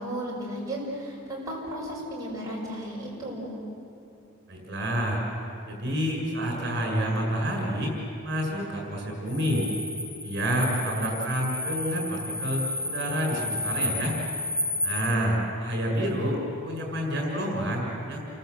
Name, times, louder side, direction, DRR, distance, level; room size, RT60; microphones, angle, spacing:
voice 1, 0.0-3.6, equal, 15° right, -5 dB, 6.4 m, -34 dB
voice 2, 4.5-5.2 5.7-7.9 8.2-9.7 10.2-14.2 14.8-18.2, equal, 55° right, 0 dB, 6.3 m, -28 dB
sound 1, 9.3-15.1, left 1 dB, 70° left, 5.2 m, -32 dB
30.0 x 24.0 x 8.0 m, 2.7 s
head